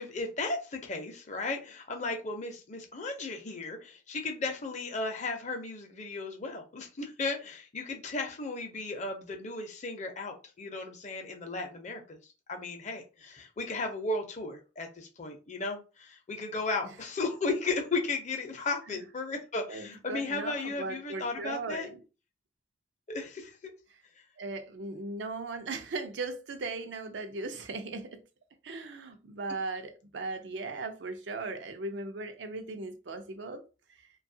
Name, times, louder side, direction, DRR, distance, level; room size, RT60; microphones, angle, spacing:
voice 1, 0.0-12.2 12.5-21.9 23.1-23.7 24.2-24.3, left 3 dB, 40° left, 0.6 m, -35 dB
voice 2, 19.7-22.0 24.4-28.2 28.6-33.6, right 3 dB, 85° right, 0.5 m, -38 dB
2.6 x 2.3 x 2.7 m
head